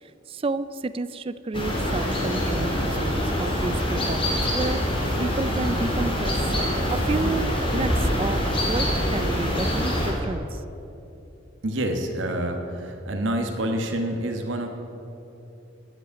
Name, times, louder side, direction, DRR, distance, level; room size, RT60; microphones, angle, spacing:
voice 1, 0.3-6.3 6.9-10.6, right 3 dB, 30° right, 14 dB, 0.4 m, -31 dB
sound 1, 1.5-10.1, equal, 30° left, 2.4 m, -25 dB
voice 2, 11.6-14.7, right 1 dB, 80° right, 3 dB, 1.2 m, -27 dB
10.0 x 8.0 x 8.9 m, 2.9 s
head